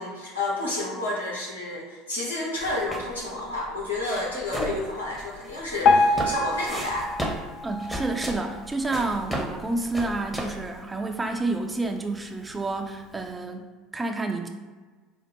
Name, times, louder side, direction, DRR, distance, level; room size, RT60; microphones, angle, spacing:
voice 1, 0.0-7.1, left 2 dB, 85° left, -5 dB, 1.1 m, -30 dB
sound 1, 2.6-10.8, equal, 5° left, 0.9 m, -35 dB
Piano, 5.8-8.9 9.5-9.6 9.9-10.0 10.7-10.8 11.4-11.5, left 3 dB, 55° left, 0.4 m, -25 dB
voice 2, 7.6-14.5, right 2 dB, 15° right, 4 dB, 0.5 m, -29 dB
5.1 x 2.1 x 3.5 m, 1.3 s
hypercardioid pair, 70°, 0 cm